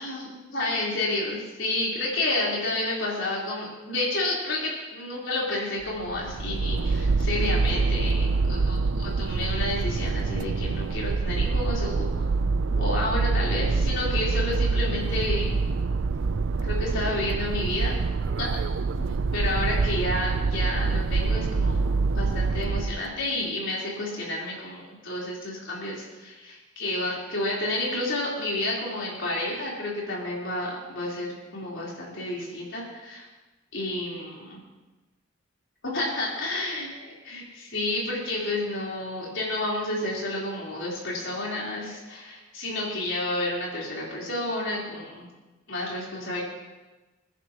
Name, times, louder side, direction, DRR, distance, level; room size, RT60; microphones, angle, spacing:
voice 1, 0.0-12.3 12.7-15.5 16.6-18.0 18.4-18.5 19.0-21.8 22.1-33.3 33.7-34.6 35.8-36.9 37.3-45.3 45.7-46.4, left 2 dB, 70° left, -5 dB, 4.0 m, -30 dB
sound 1, 5.8-23.1, right 4 dB, 70° right, 0.5 m, -26 dB
28.0 x 11.0 x 3.0 m, 1.2 s
head